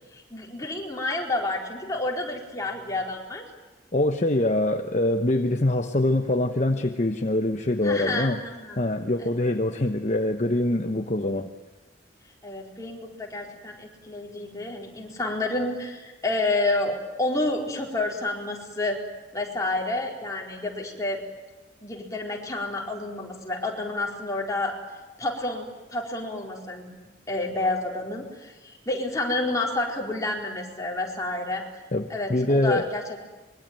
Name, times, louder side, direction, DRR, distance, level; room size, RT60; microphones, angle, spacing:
voice 1, 0.3-3.4 7.8-8.8 9.2-9.3 12.4-19.0 19.3-21.2 21.8-24.8 25.2-31.6 32.1-33.2, left 2 dB, 20° left, -1 dB, 4.4 m, -29 dB
voice 2, 3.9-8.4 8.8-11.5 31.9-32.9, left 1 dB, 40° left, 6 dB, 1.0 m, -24 dB
25.0 x 22.5 x 9.2 m, 1.2 s
head